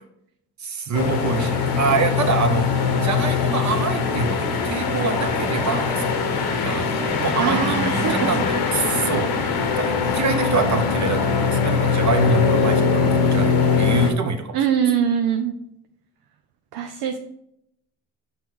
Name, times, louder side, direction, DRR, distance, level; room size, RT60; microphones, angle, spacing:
voice 1, 0.6-2.7 2.9-9.4 9.8-14.7, right 5 dB, 45° right, 7 dB, 1.0 m, -26 dB
sound 1, 0.9-14.1, left 5 dB, 75° left, 1.2 m, -21 dB
voice 2, 7.3-8.3 14.5-15.5 16.7-17.2, right 8 dB, 75° right, 5 dB, 0.6 m, -22 dB
5.6 x 3.9 x 4.7 m, 0.77 s
supercardioid pair, 55°, 38 cm